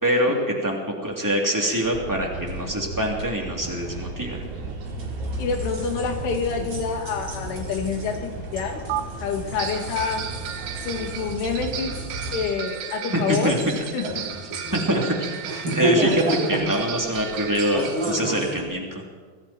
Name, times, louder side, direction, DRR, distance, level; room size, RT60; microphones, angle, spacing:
voice 1, 0.0-4.4 13.1-13.6 14.7-15.3 15.7-19.0, equal, 5° right, -1 dB, 2.1 m, -24 dB
sound 1, 1.8-12.4, right 2 dB, 60° right, 4.6 m, -34 dB
sound 2, 2.5-2.6 3.0-3.2 3.9-4.0 4.8-18.6, right 1 dB, 30° right, 4.1 m, -31 dB
voice 2, 5.4-8.9 9.2-10.3 10.8-12.0 12.3-13.6 13.9-14.2 15.6-15.8, left 5 dB, 85° left, 3 dB, 4.8 m, -27 dB
sound 3, 8.9-9.0 9.6-18.2, right 10 dB, 90° right, 3.7 m, -35 dB
27.5 x 21.5 x 4.5 m, 1.5 s
omnidirectional pair, 5.4 m